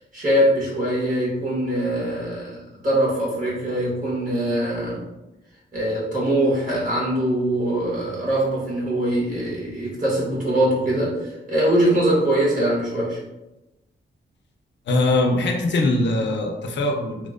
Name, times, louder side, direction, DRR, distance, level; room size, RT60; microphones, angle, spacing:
voice 1, 0.1-5.0 5.7-13.2, right 1 dB, 45° right, -6 dB, 1.2 m, -22 dB
voice 2, 14.9-17.3, left 2 dB, 70° left, 2 dB, 0.4 m, -22 dB
2.7 x 2.0 x 2.4 m, 0.98 s
wide cardioid pair, 100°, 19 cm